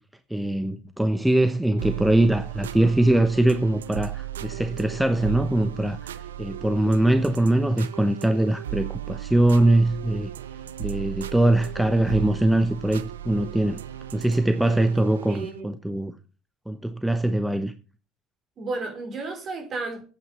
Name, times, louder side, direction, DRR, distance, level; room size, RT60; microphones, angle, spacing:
voice 1, 0.3-10.3 10.8-13.8 14.1-16.1 16.7-17.7, right 1 dB, 5° right, 1.0 m, -22 dB
sound 1, 1.8-15.6, right 12 dB, 80° right, 0.6 m, -36 dB
voice 2, 15.3-15.7 18.6-20.0, right 3 dB, 35° right, 4.4 m, -32 dB
10.0 x 8.7 x 5.6 m
figure-of-eight pair, 70°, 0 cm